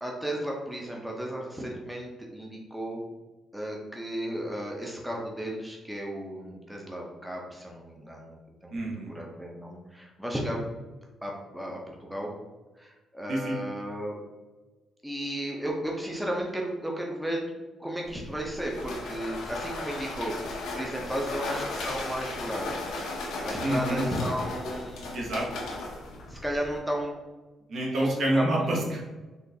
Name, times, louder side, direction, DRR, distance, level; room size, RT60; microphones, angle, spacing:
voice 1, 0.0-3.1 3.5-8.7 9.1-10.6 11.2-12.3 12.8-14.2 15.0-17.5 17.8-22.9 23.4-25.1 26.3-27.1 27.8-28.4, right 1 dB, 5° right, -1 dB, 0.6 m, -34 dB
voice 2, 8.7-9.1 13.3-13.6 23.6-24.1 25.1-25.5 27.7-29.0, right 1 dB, 60° right, -2 dB, 0.9 m, -27 dB
sound 1, 18.0-26.8, left 2 dB, 85° left, 0.6 m, -36 dB
3.7 x 2.4 x 2.7 m, 1.2 s
cardioid pair, 90°, 0 cm